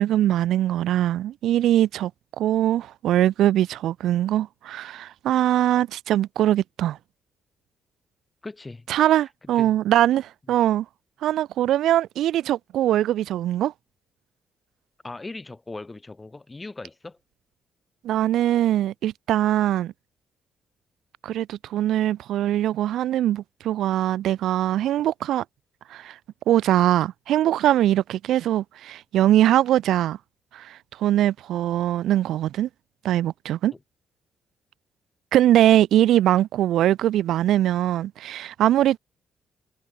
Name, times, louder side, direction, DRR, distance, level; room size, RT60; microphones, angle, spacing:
voice 1, 0.0-2.1 2.4-7.0 8.9-10.8 11.2-13.7 18.0-19.9 21.2-25.4 25.9-26.2 26.5-30.2 30.5-32.7 33.0-33.7 35.3-39.0, right 12 dB, 80° right, 0.8 m, -22 dB
voice 2, 8.4-8.9 9.4-9.7 15.0-17.2 33.7-33.8, left 2 dB, 20° left, 2.5 m, -39 dB
cardioid pair, 90°, 0 cm